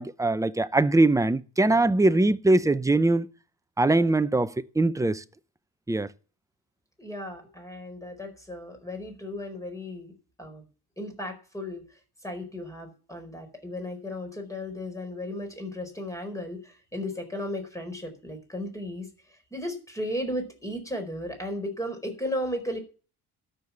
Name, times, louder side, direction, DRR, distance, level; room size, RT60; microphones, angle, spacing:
voice 1, 0.0-3.3 3.8-5.2 5.9-6.1, right 2 dB, 10° right, 0.7 m, -22 dB
voice 2, 7.0-10.1 10.4-10.6 11.0-11.8 12.2-22.8, left 1 dB, 10° left, 4.6 m, -35 dB
13.0 x 6.9 x 7.0 m
cardioid pair, 95°, 39 cm